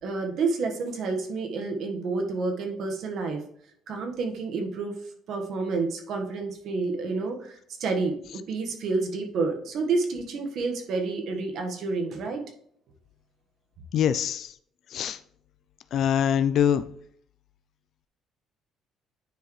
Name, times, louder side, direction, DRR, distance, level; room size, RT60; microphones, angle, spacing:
voice 1, 0.0-3.4 3.9-4.9 5.3-12.5, right 3 dB, 60° right, 4 dB, 1.4 m, -29 dB
voice 2, 13.9-14.5 14.9-15.2 15.9-16.9, left 9 dB, 60° left, 13 dB, 0.4 m, -23 dB
10.0 x 4.7 x 3.2 m, 0.65 s
cardioid pair, 120°, 0 cm